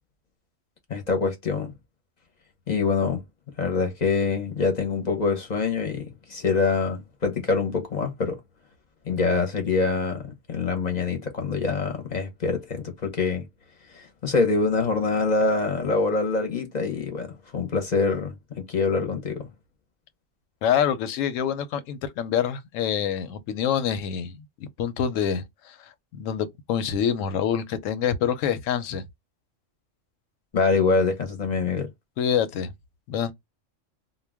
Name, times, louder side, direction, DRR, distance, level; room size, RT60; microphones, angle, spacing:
voice 1, 0.9-1.7 2.7-3.2 3.6-8.4 9.1-13.4 13.9-19.5 30.5-31.9, left 4 dB, 45° left, 0.6 m, -25 dB
voice 2, 20.6-29.1 32.2-32.7 33.1-33.3, left 8 dB, 90° left, 1.0 m, -26 dB
2.2 x 2.2 x 3.3 m
omnidirectional pair, 1.3 m